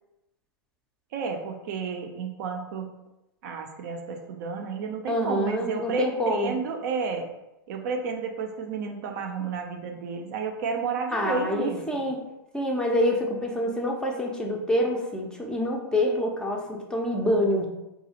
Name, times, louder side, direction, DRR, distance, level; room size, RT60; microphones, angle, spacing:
voice 1, 1.1-3.0 3.4-7.3 7.7-12.1, right 5 dB, 50° right, 3 dB, 0.5 m, -31 dB
voice 2, 5.1-6.5 11.1-12.2 12.5-17.7, left 1 dB, 5° left, 0 dB, 0.5 m, -26 dB
4.0 x 2.4 x 2.8 m, 0.93 s
figure-of-eight pair, 100°, 12 cm